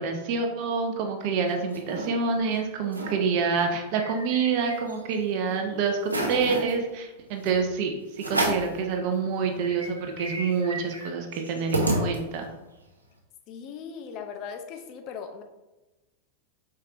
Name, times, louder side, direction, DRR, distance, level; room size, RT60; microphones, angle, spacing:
voice 1, 0.0-12.5, right 5 dB, 45° right, 4 dB, 0.7 m, -27 dB
sound 1, 1.2-2.1 2.5-2.6 2.8-3.2 3.6-5.2 5.6-5.7 6.0-6.7 7.4-7.6 8.2-8.8 9.2-9.3 9.5-12.6, right 1 dB, 80° right, 0.7 m, -31 dB
voice 2, 13.5-15.4, left 6 dB, 40° left, 6 dB, 0.6 m, -38 dB
4.7 x 4.4 x 2.5 m, 1.1 s
figure-of-eight pair, 90°, 0 cm